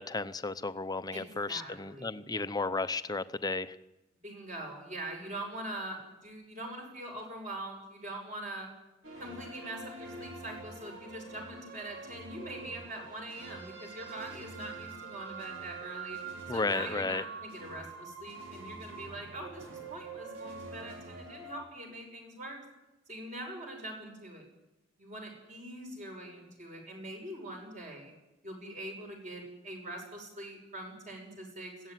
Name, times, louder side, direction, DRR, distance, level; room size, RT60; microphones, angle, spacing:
voice 1, 0.0-3.7 16.5-17.2, left 3 dB, 20° left, 12 dB, 0.7 m, -33 dB
voice 2, 1.1-2.1 4.2-8.7 9.2-16.2 16.5-22.6 23.1-24.4 25.0-28.1 28.4-31.9, right 1 dB, 40° right, 2 dB, 6.0 m, -43 dB
sound 1, 9.0-21.5, right 4 dB, 80° right, 4.9 m, -45 dB
21.5 x 15.5 x 9.4 m, 0.98 s
head